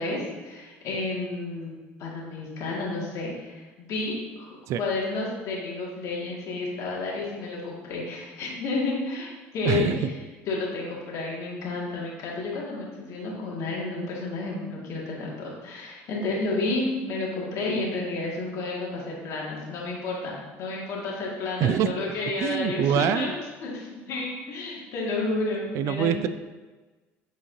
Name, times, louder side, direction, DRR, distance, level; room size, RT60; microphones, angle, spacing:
voice 1, 0.0-4.5 4.8-10.2 10.5-23.3 23.6-26.3, left 3 dB, 60° left, -3 dB, 2.0 m, -31 dB
voice 2, 9.6-10.0 21.6-21.9 22.4-23.3 25.7-26.3, right 9 dB, 60° right, 11 dB, 0.4 m, -24 dB
8.8 x 4.0 x 2.7 m, 1.3 s
supercardioid pair, 90°, 6 cm